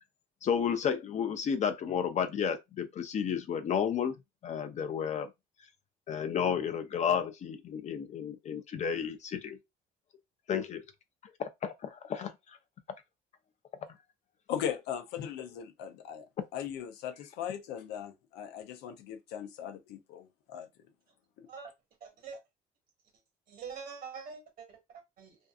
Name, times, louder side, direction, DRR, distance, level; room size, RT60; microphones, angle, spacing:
voice 1, 0.4-4.2 4.4-5.3 6.1-9.6 10.5-10.8 11.4-12.3, left 7 dB, 45° left, 0.5 m, -32 dB
voice 2, 14.5-16.2 16.5-20.7 21.4-21.5, left 9 dB, 90° left, 0.6 m, -38 dB
voice 3, 22.0-22.4 23.5-25.4, right 6 dB, 60° right, 1.3 m, -45 dB
2.6 x 2.4 x 2.3 m
cardioid pair, 110°, 17 cm